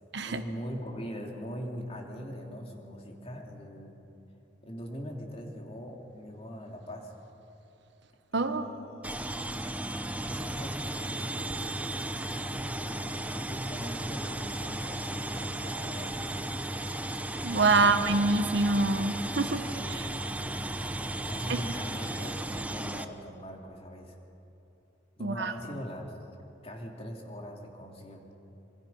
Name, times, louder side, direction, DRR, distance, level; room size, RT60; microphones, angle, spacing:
voice 1, 0.3-3.9 4.6-7.1 8.3-9.1 10.3-11.3 12.3-16.3 17.7-18.2 19.8-20.8 21.2-24.2 25.2-26.1 26.6-28.3, equal, 35° left, 1 dB, 2.7 m, -41 dB
voice 2, 8.3-8.7 17.4-19.6 19.9-20.1 21.5-21.6 25.2-25.5, right 3 dB, 70° right, 9 dB, 1.2 m, -26 dB
sound 1, 9.0-23.0, right 1 dB, 10° right, 0.7 m, -35 dB
sound 2, 13.7-13.8 14.4-14.6 15.4-15.5 16.1-16.5 17.4-18.7, right 1 dB, 25° right, 3.1 m, -47 dB
26.0 x 23.5 x 5.6 m, 2.9 s
head